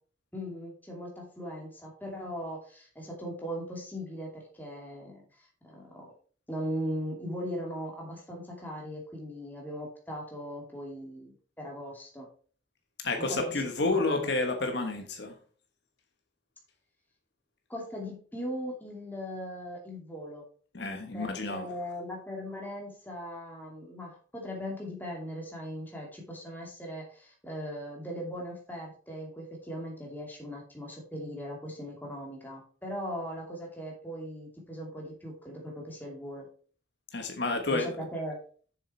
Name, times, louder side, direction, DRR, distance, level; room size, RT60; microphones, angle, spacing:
voice 1, 0.3-6.1 6.5-12.3 13.2-14.4 17.7-20.4 21.1-36.5 37.7-38.4, equal, 10° left, -1 dB, 2.6 m, -39 dB
voice 2, 13.0-15.3 20.7-21.7 37.1-37.9, left 3 dB, 65° left, 5 dB, 1.3 m, -30 dB
7.5 x 6.9 x 4.5 m, 0.43 s
head